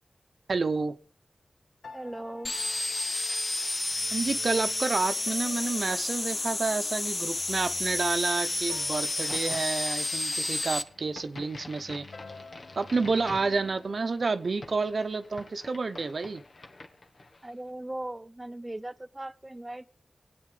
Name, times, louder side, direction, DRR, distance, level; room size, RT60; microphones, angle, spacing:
voice 1, 0.5-0.9 4.1-12.1 12.8-16.4, right 4 dB, 65° right, 10 dB, 0.8 m, -29 dB
sound 1, 1.8-14.1, left 4 dB, 80° left, 0.8 m, -51 dB
voice 2, 1.9-2.5 17.4-19.9, right 1 dB, 25° right, 10 dB, 0.5 m, -38 dB
sound 2, 2.4-10.8, left 2 dB, 40° left, 0.9 m, -31 dB
Crack, 9.0-17.6, left 2 dB, 65° left, 1.3 m, -48 dB
23.5 x 8.7 x 3.7 m, 0.42 s
cardioid pair, 40°, 0 cm